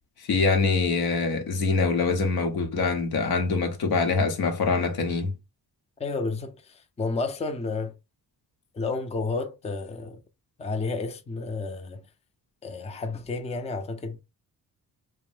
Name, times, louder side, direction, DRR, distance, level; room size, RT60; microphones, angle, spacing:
voice 1, 0.3-5.3, left 4 dB, 75° left, 0.8 m, -24 dB
voice 2, 6.0-8.0 8.7-10.2 10.6-12.1 12.6-14.2, left 3 dB, 20° left, 0.5 m, -31 dB
2.5 x 2.1 x 3.3 m
cardioid pair, 60°, 37 cm